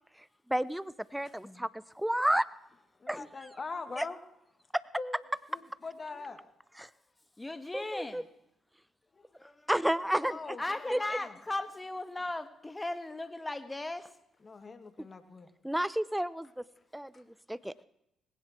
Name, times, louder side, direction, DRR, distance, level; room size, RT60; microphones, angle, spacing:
voice 1, 0.5-2.4 3.1-3.3 4.0-4.1 4.7-4.8 6.8-6.9 7.7-8.2 9.7-10.4 10.9-11.0 15.0-15.1 15.6-16.6 16.9-17.7, right 1 dB, 5° right, 18 dB, 0.8 m, -31 dB
voice 2, 3.0-4.2 5.0-5.2 5.5-6.4 9.2-9.3 10.2-11.4 14.4-15.5 17.1-17.2, left 3 dB, 40° left, 9 dB, 2.2 m, -42 dB
voice 3, 7.4-8.3 9.4-9.7 10.2-10.3 10.6-14.1, left 2 dB, 20° left, 11 dB, 1.6 m, -37 dB
19.5 x 16.5 x 4.5 m, 0.80 s
hypercardioid pair, 50°, 0 cm